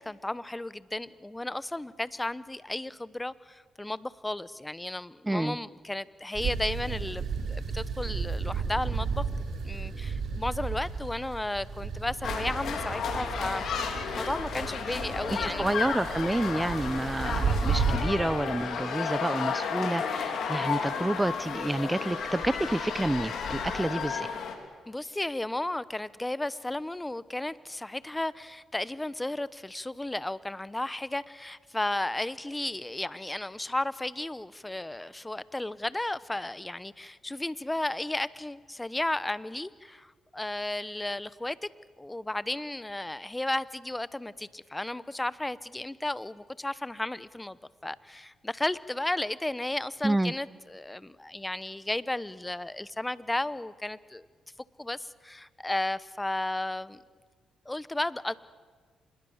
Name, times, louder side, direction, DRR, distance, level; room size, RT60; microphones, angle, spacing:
voice 1, 0.0-9.2 9.6-13.6 14.2-15.7 24.9-41.7 42.0-54.3 54.8-57.0 57.7-58.4, left 1 dB, 15° left, 17 dB, 0.9 m, -34 dB
voice 2, 5.2-5.6 15.4-24.3 50.0-50.3, right 1 dB, 15° right, 18 dB, 0.7 m, -29 dB
sound 1, 6.3-18.0, right 5 dB, 60° right, 4.6 m, -33 dB
sound 2, 12.2-24.5, left 6 dB, 70° left, 3.1 m, -33 dB
26.0 x 21.5 x 7.3 m, 1.5 s
supercardioid pair, 60°, 0 cm